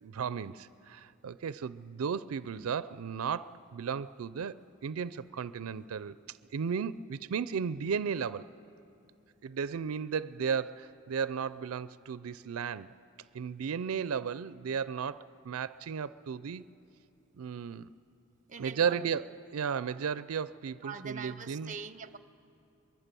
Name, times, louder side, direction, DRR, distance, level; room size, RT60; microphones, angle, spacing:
voice 1, 0.0-8.5 9.4-12.9 13.3-16.6 17.4-17.9 18.6-19.3 19.5-21.7, right 6 dB, 90° right, 16 dB, 0.4 m, -34 dB
voice 2, 18.5-19.0 20.8-22.2, right 5 dB, 35° right, 13 dB, 0.7 m, -43 dB
23.5 x 22.5 x 6.9 m, 2.6 s
head